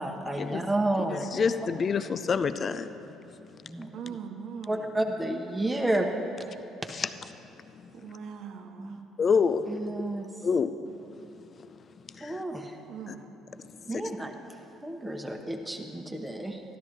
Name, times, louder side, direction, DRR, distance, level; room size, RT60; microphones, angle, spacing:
voice 1, 0.0-1.3 3.6-4.2 4.7-6.1 8.8-9.0 9.7-10.3 12.2-12.7 13.9-14.3 14.8-16.6, right 1 dB, 15° right, 2 dB, 1.0 m, -31 dB
voice 2, 1.1-2.9 6.9-7.1 7.8-7.9 9.2-9.9 10.4-10.7 12.1-12.4 13.1-13.2 13.9-14.1, left 5 dB, 40° left, 11 dB, 0.4 m, -27 dB
voice 3, 3.9-4.9 7.9-9.0 12.9-13.3, right 7 dB, 60° right, 5 dB, 0.9 m, -41 dB
13.0 x 12.0 x 3.3 m, 2.9 s
figure-of-eight pair, 50°, 0 cm